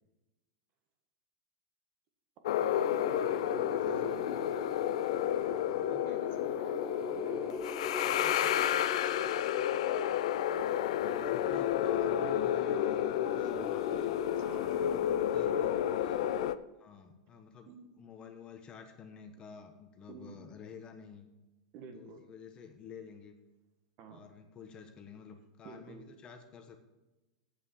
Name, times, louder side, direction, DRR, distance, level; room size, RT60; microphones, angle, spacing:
sound 1, 2.4-16.5, left 11 dB, 75° left, 0.4 m, -31 dB
voice 1, 2.6-4.6 5.8-7.6 8.0-9.8 14.4-15.1 15.5-15.9 17.7-17.9 20.1-20.4 21.7-22.2 24.0-24.2 25.6-26.1, right 5 dB, 45° right, 6 dB, 1.7 m, -50 dB
sound 2, 2.8-16.5, left 3 dB, ahead, 1.0 m, -41 dB
voice 2, 3.2-4.1 5.7-6.0 10.6-14.1 14.5-16.2 16.7-17.7 18.0-21.3 21.9-23.3 24.1-26.8, left 6 dB, 30° left, 6 dB, 1.2 m, -50 dB
8.4 x 7.0 x 7.1 m, 1.0 s
supercardioid pair, 130°, 3 cm